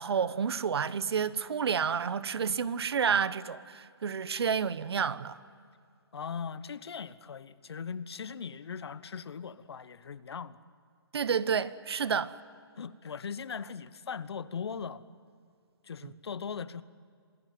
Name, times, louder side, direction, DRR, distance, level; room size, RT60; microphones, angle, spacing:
voice 1, 0.0-5.4 11.1-12.3, right 6 dB, 70° right, 1.1 m, -30 dB
voice 2, 6.1-10.6 12.1-12.2 12.8-15.1 15.8-16.8, left 6 dB, 75° left, 1.1 m, -39 dB
26.5 x 19.0 x 9.3 m
hypercardioid pair, 150°, 14 cm